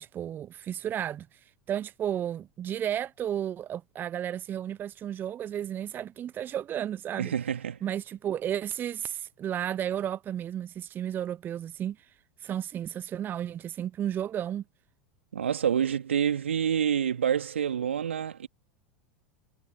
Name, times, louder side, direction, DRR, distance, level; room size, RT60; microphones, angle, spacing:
voice 1, 0.0-7.3 7.8-12.1 12.4-14.6, right 10 dB, 30° right, 0.8 m, -33 dB
voice 2, 7.2-7.8 15.3-18.5, right 8 dB, 75° right, 2.6 m, -27 dB
figure-of-eight pair, 85°, 7 cm